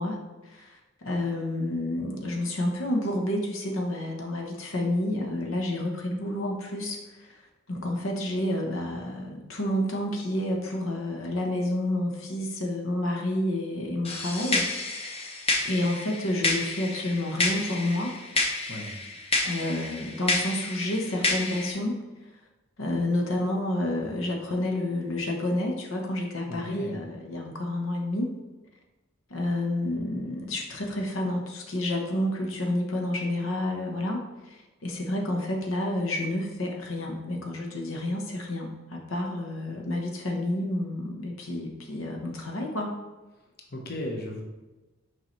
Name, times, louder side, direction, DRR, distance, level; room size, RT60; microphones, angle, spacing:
voice 1, 0.0-15.4 15.6-18.2 19.4-22.1 22.8-28.3 29.3-42.9, left 1 dB, 90° left, 1 dB, 1.0 m, -30 dB
sound 1, 14.0-21.7, left 2 dB, 30° left, 0.7 m, -30 dB
voice 2, 26.5-26.9 43.7-44.4, left 1 dB, 55° left, 1 dB, 1.0 m, -35 dB
6.5 x 4.7 x 3.1 m, 1.1 s
head